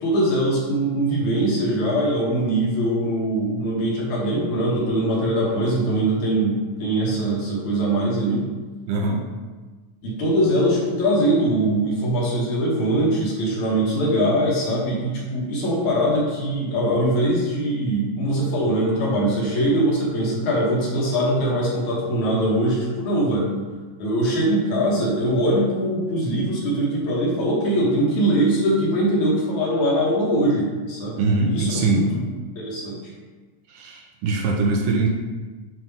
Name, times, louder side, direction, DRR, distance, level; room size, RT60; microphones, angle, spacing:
voice 1, 0.0-8.5 10.0-23.5 24.0-31.2 31.5-32.3 32.6-33.0, right 1 dB, 65° left, -4 dB, 2.5 m, -22 dB
voice 2, 8.9-9.3 31.2-32.1 33.7-35.1, right 3 dB, 80° right, 1 dB, 2.0 m, -22 dB
7.4 x 3.1 x 5.4 m, 1.3 s
omnidirectional pair, 3.9 m